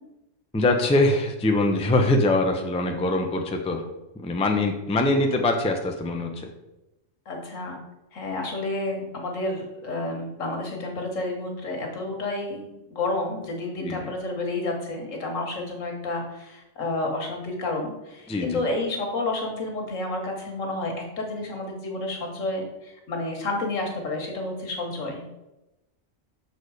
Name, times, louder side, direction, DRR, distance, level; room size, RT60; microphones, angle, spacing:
voice 1, 0.5-3.8 4.2-6.3 13.8-14.1 18.3-18.6, left 2 dB, 10° left, 4 dB, 0.4 m, -23 dB
voice 2, 7.3-7.8 8.1-25.2, left 2 dB, 80° left, 2 dB, 1.7 m, -30 dB
6.6 x 4.3 x 4.8 m, 0.96 s
omnidirectional pair, 1.3 m